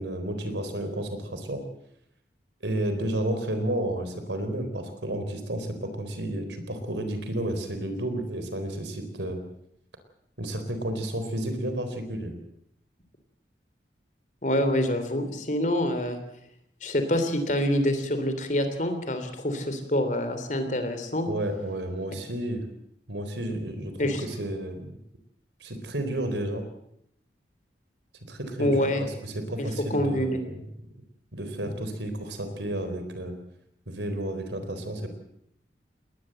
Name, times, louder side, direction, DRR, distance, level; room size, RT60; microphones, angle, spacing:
voice 1, 0.0-1.6 2.6-9.4 10.4-12.4 21.3-22.6 23.1-25.0 25.6-26.6 28.3-30.6 31.3-33.3 33.9-35.1, right 1 dB, 90° right, 8 dB, 4.1 m, -31 dB
voice 2, 14.4-16.2 16.8-21.3 24.0-24.2 28.6-29.0 29.6-30.4, left 1 dB, 45° left, 8 dB, 3.2 m, -26 dB
20.5 x 19.5 x 7.8 m, 0.75 s
head